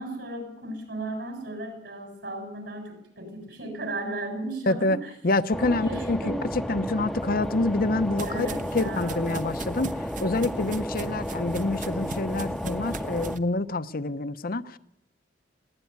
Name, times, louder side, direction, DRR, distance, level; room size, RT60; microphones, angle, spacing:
voice 1, 0.0-4.9 5.7-6.4 8.2-9.2, right 2 dB, 70° right, 7.3 m, -35 dB
voice 2, 4.7-6.2 6.5-8.5 8.7-14.8, left 2 dB, 55° left, 0.8 m, -27 dB
sound 1, 5.5-13.4, equal, ahead, 0.9 m, -33 dB
sound 2, 7.3-13.4, right 4 dB, 45° right, 1.0 m, -41 dB
21.0 x 17.0 x 9.5 m
head